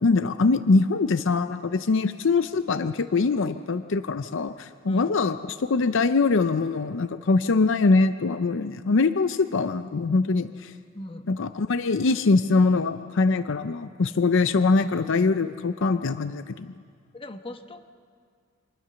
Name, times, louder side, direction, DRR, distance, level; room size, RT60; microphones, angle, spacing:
voice 1, 0.0-10.7 11.3-16.7, left 3 dB, 65° left, 11 dB, 0.6 m, -23 dB
voice 2, 4.9-5.2 10.9-11.3 17.1-17.9, left 1 dB, 25° left, 7 dB, 1.1 m, -40 dB
25.0 x 19.5 x 6.9 m, 2.1 s
head